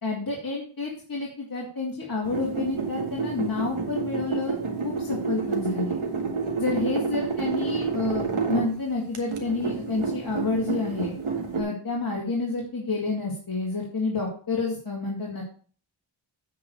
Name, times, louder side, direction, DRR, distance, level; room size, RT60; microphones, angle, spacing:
voice 1, 0.0-6.0 6.6-11.1 11.6-15.4, left 3 dB, 45° left, -3 dB, 2.3 m, -29 dB
sound 1, 2.2-8.7 9.1-11.6, right 5 dB, 75° right, 2.0 m, -29 dB
9.2 x 4.8 x 6.7 m, 0.43 s
wide cardioid pair, 75°, 49 cm